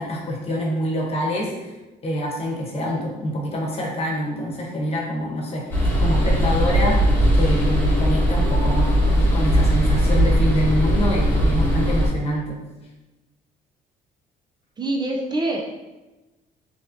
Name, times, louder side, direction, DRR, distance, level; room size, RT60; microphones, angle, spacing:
voice 1, 0.0-1.7 2.0-7.1 7.4-12.5, equal, 35° left, -2 dB, 1.0 m, -26 dB
sound 1, 5.7-12.1, equal, 10° left, 1.1 m, -19 dB
voice 2, 14.8-15.9, right 1 dB, 25° right, 0 dB, 0.4 m, -25 dB
4.1 x 3.2 x 2.7 m, 1.1 s
cardioid pair, 110°, 17 cm